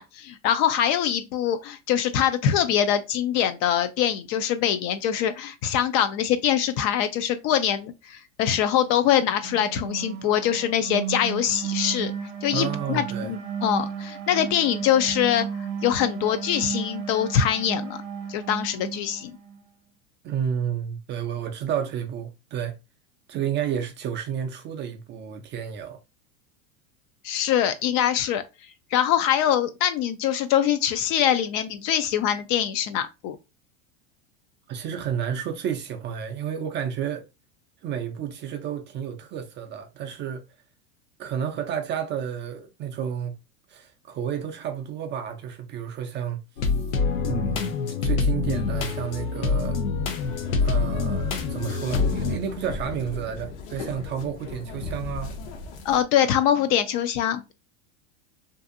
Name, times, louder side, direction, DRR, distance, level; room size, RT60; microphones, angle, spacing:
voice 1, 0.0-12.1 12.4-18.0 18.3-19.4 27.2-28.4 28.9-33.4 55.8-57.5, left 9 dB, 45° left, 0.4 m, -23 dB
sound 1, 9.1-19.6, right 7 dB, 55° right, 0.8 m, -34 dB
voice 2, 12.5-13.3 20.2-22.8 23.3-26.0 34.7-37.2 37.8-40.4 41.2-43.3 43.7-46.4 47.3-47.7 48.0-49.8 50.5-55.4, right 8 dB, 30° right, 0.4 m, -31 dB
sound 2, 46.6-52.4, left 4 dB, 90° left, 0.7 m, -25 dB
sound 3, 50.2-56.0, left 4 dB, 60° left, 0.8 m, -37 dB
2.6 x 2.4 x 2.4 m
hypercardioid pair, 110°, 40 cm